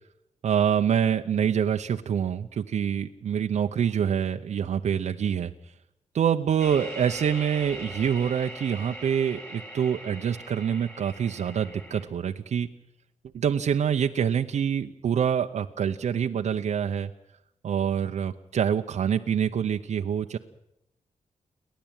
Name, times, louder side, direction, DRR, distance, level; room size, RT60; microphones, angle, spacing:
voice 1, 0.4-5.5 6.1-12.7 13.3-17.1 17.6-20.4, right 8 dB, 65° right, 5 dB, 0.8 m, -26 dB
sound 1, 6.6-12.0, equal, 15° left, 4.6 m, -41 dB
29.5 x 11.5 x 8.9 m, 0.82 s
wide cardioid pair, 170°, 13 cm